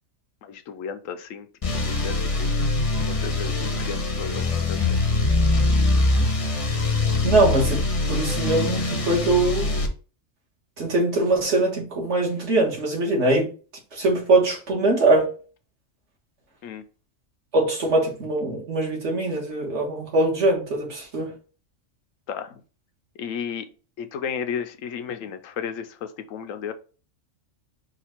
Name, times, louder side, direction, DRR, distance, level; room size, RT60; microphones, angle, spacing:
voice 1, 0.4-2.5 2.9-4.8 16.6-16.8 22.3-22.6 23.2-23.7 24.0-26.7, left 7 dB, 85° left, 1.0 m, -34 dB
sound 1, 1.6-9.9, left 2 dB, 35° left, 0.7 m, -23 dB
voice 2, 7.2-9.8 10.8-13.5 13.9-15.3 17.5-21.3, right 2 dB, 60° right, 1.8 m, -22 dB
4.9 x 2.4 x 4.3 m
omnidirectional pair, 1.3 m